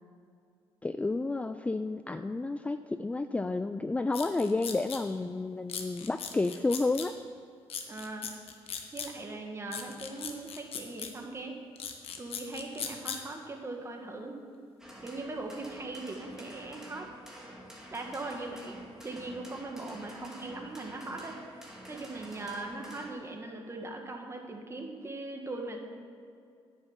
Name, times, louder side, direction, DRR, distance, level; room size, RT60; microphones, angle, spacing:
voice 1, 0.8-7.1, left 3 dB, 15° left, 9 dB, 0.3 m, -31 dB
sound 1, 4.1-5.0 5.7-7.1 7.7-9.1 9.7-11.1 11.8-13.2, left 7 dB, 65° left, 1.2 m, -38 dB
voice 2, 7.9-8.3 8.9-11.6 12.2-14.5 15.0-17.1 17.9-25.9, right 2 dB, 25° right, 2 dB, 1.7 m, -40 dB
sound 2, 14.8-23.1, right 1 dB, 5° right, 2.1 m, -48 dB
9.9 x 6.8 x 7.2 m, 2.4 s
cardioid pair, 90°, 10 cm